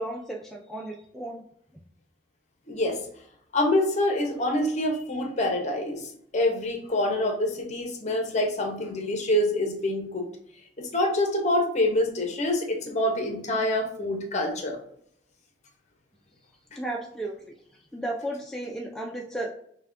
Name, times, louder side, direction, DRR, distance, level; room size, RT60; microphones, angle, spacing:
voice 1, 0.0-1.4 16.8-17.5 17.9-19.5, right 1 dB, ahead, 0 dB, 0.3 m, -34 dB
voice 2, 2.7-3.0 3.5-10.3 10.8-14.8, left 1 dB, 40° left, 2 dB, 0.7 m, -26 dB
5.8 x 2.2 x 2.5 m, 0.67 s
head